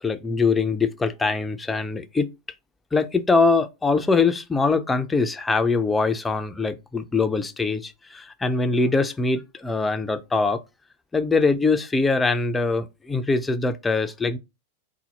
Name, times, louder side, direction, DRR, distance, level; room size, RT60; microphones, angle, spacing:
voice 1, 0.0-2.3 2.9-10.6 11.1-14.4, left 4 dB, 10° left, 0.4 m, -23 dB
4.0 x 2.2 x 4.2 m
figure-of-eight pair, 90°, 0 cm